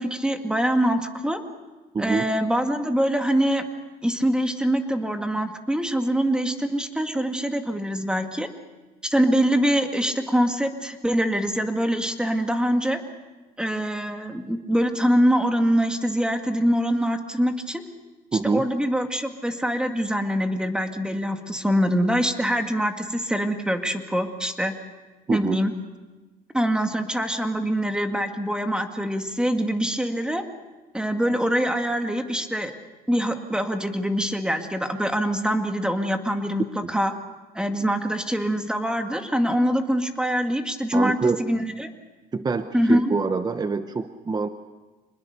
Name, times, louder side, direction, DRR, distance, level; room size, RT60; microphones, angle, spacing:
voice 1, 0.0-1.4 2.0-3.6 4.0-8.5 9.0-13.0 13.6-17.8 18.4-24.7 25.3-25.7 26.5-30.4 30.9-32.7 33.1-37.1 37.5-41.9 42.7-43.1, equal, 5° right, 5 dB, 2.0 m, -24 dB
voice 2, 18.3-18.7 25.3-25.6 36.8-36.9 40.9-41.4 42.3-44.5, right 4 dB, 25° right, 10 dB, 0.9 m, -25 dB
25.5 x 20.5 x 6.8 m, 1.2 s
cardioid pair, 110°, 17 cm